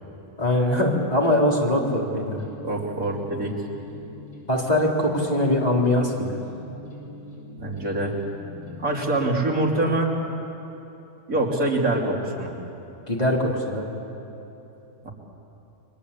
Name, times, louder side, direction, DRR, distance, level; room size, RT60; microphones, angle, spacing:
voice 1, 0.4-2.4 4.5-6.4 13.1-13.9, left 1 dB, 25° left, -2 dB, 3.7 m, -22 dB
sound 1, 2.3-8.8, left 3 dB, 75° left, 7.8 m, -42 dB
voice 2, 2.6-3.5 7.6-8.2 8.8-10.1 11.3-12.5 15.0-15.1, right 2 dB, 65° right, -1 dB, 3.4 m, -24 dB
30.0 x 23.5 x 8.4 m, 2.9 s
omnidirectional pair, 1.5 m